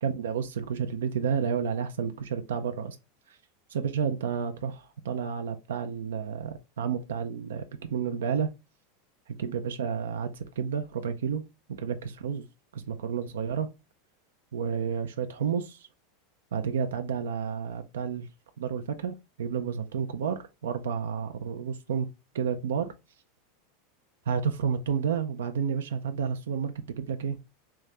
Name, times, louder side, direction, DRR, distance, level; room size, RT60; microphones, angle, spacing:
voice 1, 0.0-3.0 3.7-8.5 9.4-11.4 11.7-12.4 12.7-13.7 14.5-15.9 16.5-18.3 18.6-22.1 22.3-22.9 24.3-27.4, right 7 dB, 90° right, 0.4 m, -31 dB
3.4 x 2.8 x 3.2 m
hypercardioid pair, 115°, 0 cm